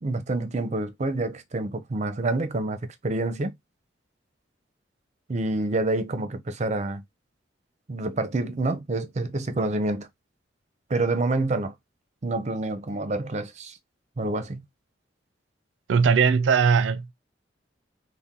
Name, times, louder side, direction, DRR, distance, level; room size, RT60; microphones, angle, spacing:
voice 1, 0.0-3.5 5.3-7.0 7.9-10.1 10.9-11.7 12.2-13.8 14.2-14.6, right 2 dB, 40° right, 0.6 m, -27 dB
voice 2, 15.9-17.1, right 6 dB, 85° right, 0.4 m, -20 dB
4.1 x 2.1 x 3.7 m
head